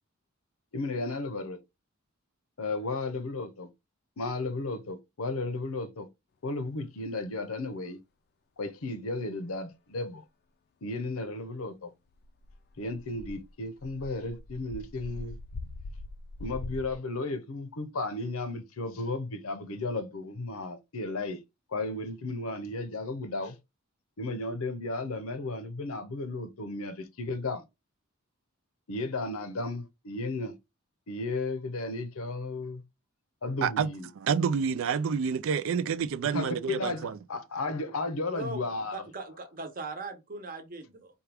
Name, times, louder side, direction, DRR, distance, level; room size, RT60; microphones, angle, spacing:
voice 1, 0.7-1.6 2.6-3.7 4.2-6.1 6.4-8.0 8.6-10.2 10.8-11.9 12.8-15.4 16.4-21.4 21.7-23.6 24.2-27.6 28.9-30.6 31.1-32.8 33.4-34.1 36.2-39.1, left 2 dB, 80° left, 0.7 m, -34 dB
sound 1, 12.1-17.0, left 2 dB, 50° left, 0.4 m, -42 dB
voice 2, 34.2-37.2, right 6 dB, 65° right, 0.4 m, -28 dB
voice 3, 38.9-41.2, right 3 dB, 45° right, 0.9 m, -39 dB
4.4 x 2.3 x 3.4 m
head